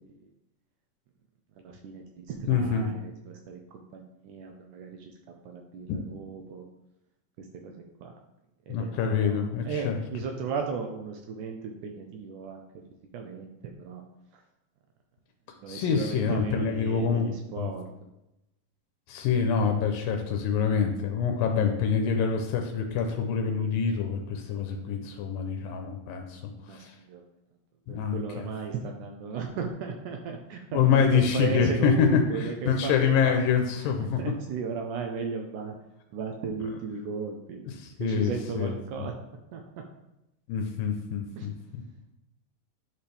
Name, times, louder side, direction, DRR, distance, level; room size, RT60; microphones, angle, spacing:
voice 1, 1.5-5.1 5.4-6.7 7.4-7.7 8.0-8.1 8.7-12.6 13.1-13.5 13.8-14.0 14.3-14.4 15.6-17.8 26.6-27.2 27.9-33.4 34.2-35.7 36.1-37.7 38.0-39.1 39.5-39.8 41.4-41.5, right 5 dB, 75° right, 3 dB, 1.9 m, -36 dB
voice 2, 2.5-2.9 5.9-6.0 8.7-10.0 15.7-17.3 17.6-17.7 19.1-27.0 27.9-28.5 30.7-34.2 37.8-38.7 39.0-39.1 40.5-41.8, left 6 dB, 85° left, 4 dB, 2.4 m, -26 dB
10.5 x 4.3 x 3.4 m, 0.88 s
omnidirectional pair, 4.0 m